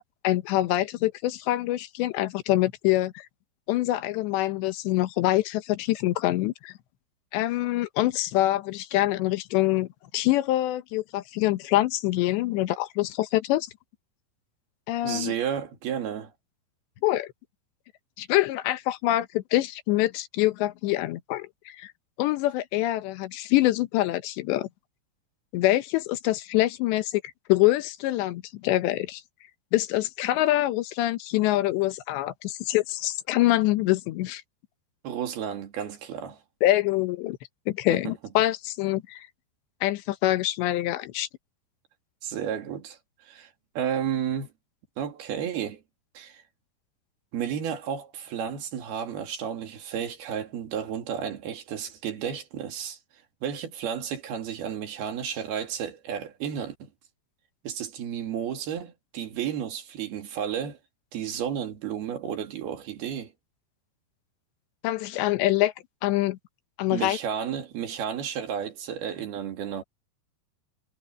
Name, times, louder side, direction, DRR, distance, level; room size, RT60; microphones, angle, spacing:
voice 1, 0.0-3.3 3.7-6.7 7.3-9.9 10.1-13.7 14.9-15.3 17.0-17.3 18.2-21.9 22.2-24.7 25.5-27.2 27.5-29.2 29.7-34.4 36.6-37.4 37.7-39.3 39.8-41.3 64.8-65.7 66.0-66.4 66.8-67.2, left 16 dB, 85° left, 3.4 m, -25 dB
voice 2, 15.0-16.3 35.0-36.4 37.9-38.1 42.2-43.5 43.8-44.5 45.0-45.8 46.1-46.4 47.3-53.0 53.4-56.9 57.6-60.8 61.1-63.3 66.9-69.8, right 8 dB, 65° right, 4.2 m, -32 dB
omnidirectional pair, 5.0 m